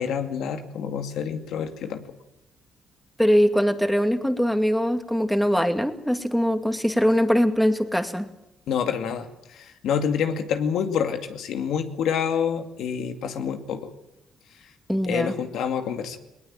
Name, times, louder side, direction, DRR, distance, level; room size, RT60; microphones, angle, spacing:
voice 1, 0.0-2.0 8.7-13.9 15.0-16.2, left 7 dB, 80° left, 6 dB, 2.5 m, -27 dB
voice 2, 3.2-8.3 14.9-15.3, equal, ahead, 7 dB, 2.4 m, -22 dB
20.0 x 20.0 x 9.0 m, 0.87 s
cardioid pair, 90°, 0 cm